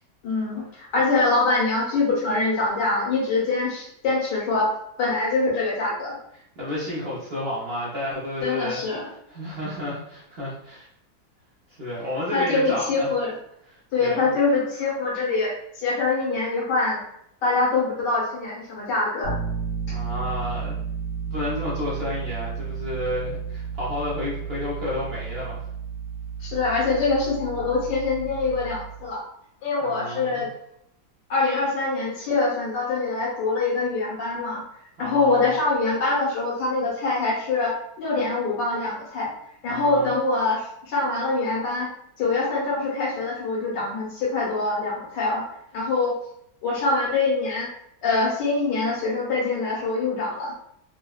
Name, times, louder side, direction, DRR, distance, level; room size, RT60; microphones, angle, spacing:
voice 1, 0.2-4.7 5.0-6.1 8.4-9.1 12.3-13.3 13.9-17.0 17.4-19.3 26.4-29.2 29.6-30.5 31.3-34.6 35.0-39.3 39.6-41.9 42.2-45.4 45.7-46.1 46.6-47.7 48.0-50.5, left 3 dB, 90° left, -5 dB, 1.6 m, -24 dB
voice 2, 6.6-10.9 11.7-13.1 13.7-14.3 19.9-20.8 21.3-25.6 29.8-30.5 35.0-35.5 39.7-40.1, left 1 dB, 55° right, -7 dB, 0.7 m, -31 dB
Bass guitar, 19.2-29.1, right 6 dB, 70° left, 1.6 m, -32 dB
3.7 x 2.1 x 2.3 m, 0.75 s
omnidirectional pair, 1.8 m